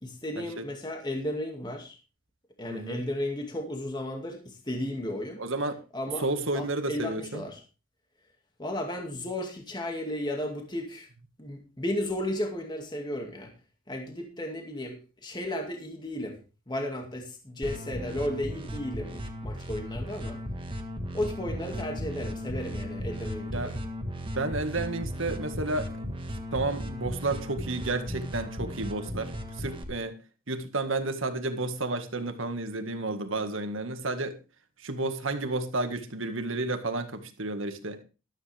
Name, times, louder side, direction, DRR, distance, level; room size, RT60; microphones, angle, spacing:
voice 1, 0.0-2.0 2.6-5.4 5.9-6.3 6.5-7.6 8.6-11.1 11.4-13.5 13.9-16.4 16.7-20.4 21.1-23.8, left 1 dB, 20° left, 3 dB, 2.2 m, -34 dB
voice 2, 2.7-3.0 5.4-5.7 6.2-7.4 23.5-23.7 24.3-26.2 26.5-30.2 30.5-34.4 34.8-38.0, right 2 dB, 70° right, 8 dB, 1.8 m, -31 dB
sound 1, 17.6-29.8, equal, 25° right, 1.6 m, -36 dB
13.5 x 13.0 x 3.5 m, 0.32 s
head